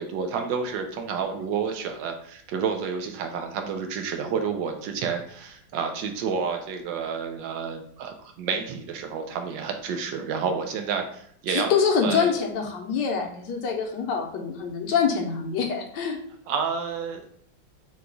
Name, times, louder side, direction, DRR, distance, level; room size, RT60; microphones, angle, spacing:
voice 1, 0.0-11.7 12.0-12.3 16.5-17.2, right 6 dB, 80° right, 5 dB, 1.3 m, -30 dB
voice 2, 11.5-16.2, left 6 dB, 75° left, 2 dB, 1.3 m, -25 dB
4.7 x 2.3 x 3.8 m, 0.64 s
omnidirectional pair, 2.0 m